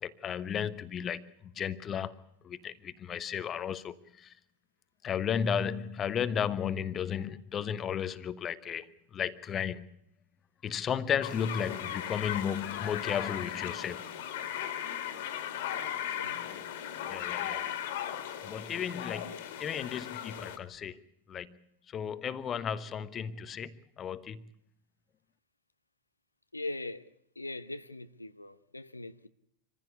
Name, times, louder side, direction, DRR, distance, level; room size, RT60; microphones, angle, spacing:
voice 1, 0.0-1.3 1.6-2.2 2.4-4.3 5.0-9.9 10.6-14.1 16.4-16.7 17.1-17.6 18.4-21.0 21.3-21.6 21.9-24.4, left 8 dB, 25° left, 1.1 m, -34 dB
sound 1, 11.2-20.6, left 10 dB, 55° left, 2.3 m, -37 dB
voice 2, 26.5-27.0 27.4-29.3, left 2 dB, 85° left, 0.8 m, -41 dB
26.0 x 15.5 x 8.2 m
figure-of-eight pair, 90°, 0 cm